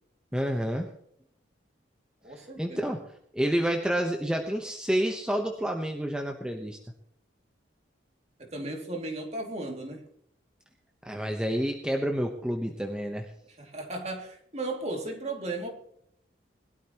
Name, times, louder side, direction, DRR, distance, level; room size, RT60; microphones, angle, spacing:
voice 1, 0.3-0.9 2.6-3.1 3.3-6.8 11.0-13.3, equal, 5° right, 2 dB, 1.0 m, -29 dB
voice 2, 2.2-2.9 8.4-10.1 13.4-15.7, right 2 dB, 35° right, 2 dB, 2.6 m, -36 dB
21.0 x 12.5 x 3.0 m, 0.69 s
head